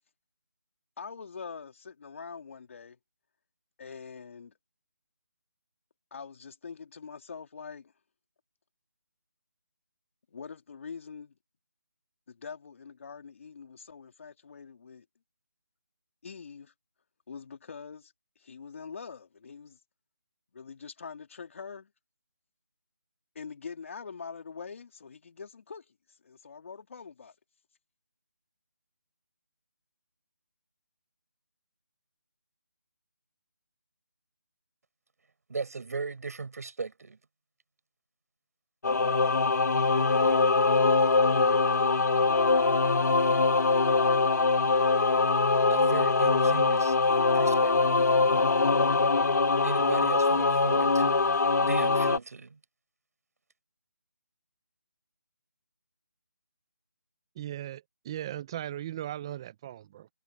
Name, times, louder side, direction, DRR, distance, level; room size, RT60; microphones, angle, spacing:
voice 1, 1.0-3.0 3.8-4.5 6.1-7.9 10.3-11.3 12.3-15.0 16.2-16.7 17.3-18.1 18.4-19.8 20.5-21.9 23.3-27.3, left 5 dB, 45° left, 2.5 m, -44 dB
voice 2, 35.5-37.2 45.7-47.0 47.3-48.1 49.6-52.6, right 4 dB, 60° right, 7.2 m, -37 dB
Singing / Musical instrument, 38.8-52.2, left 3 dB, 70° left, 1.6 m, -23 dB
voice 3, 57.4-60.1, right 12 dB, 15° right, 0.4 m, -38 dB
figure-of-eight pair, 165°, 10 cm